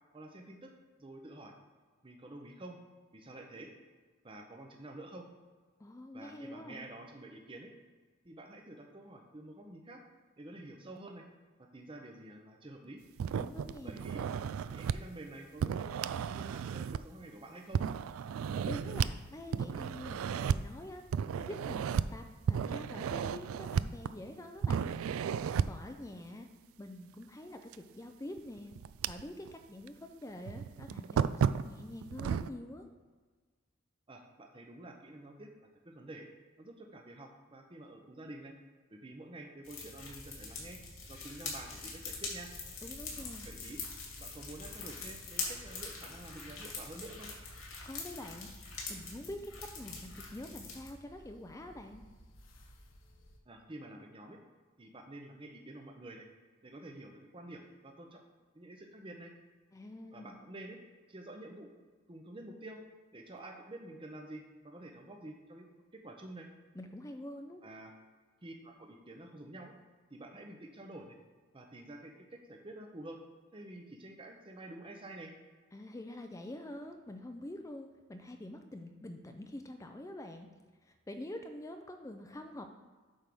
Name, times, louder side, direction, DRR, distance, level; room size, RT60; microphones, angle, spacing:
voice 1, 0.1-0.7 1.0-1.5 2.0-2.8 3.1-3.7 4.2-5.3 6.1-7.7 8.2-10.0 10.4-11.2 11.7-13.0 13.8-14.2 14.7-17.8 34.1-35.5 35.8-36.3 36.6-38.5 38.9-40.8 41.1-42.5 43.5-43.8 44.2-47.3 53.5-54.4 54.8-56.3 56.6-58.2 58.5-59.3 60.1-60.8 61.1-61.7 62.1-62.8 63.1-65.7 65.9-66.5 67.6-67.9 68.4-69.7 70.1-71.2 71.5-72.1 72.5-73.2 73.5-75.3, right 1 dB, 25° right, 2 dB, 0.7 m, -49 dB
voice 2, 5.8-6.9 13.4-14.0 18.7-21.1 21.4-24.9 25.6-26.5 26.8-28.7 29.1-32.9 42.8-43.5 47.9-48.5 48.9-52.0 59.7-60.4 66.7-67.6 75.7-80.5 80.8-82.7, left 1 dB, 15° left, 5 dB, 0.4 m, -46 dB
sound 1, 13.2-15.0 15.6-17.2 17.7-19.1 19.5-20.6 21.1-22.1 22.5-24.3 24.6-25.8 27.7-27.8 28.4-29.5 29.9-30.0 30.5-32.5, right 7 dB, 85° right, 0.3 m, -33 dB
sound 2, 39.6-50.9, left 4 dB, 85° left, 2.4 m, -44 dB
sound 3, 39.9-53.4, equal, 65° left, 1.1 m, -57 dB
8.8 x 3.5 x 6.1 m, 1.4 s
head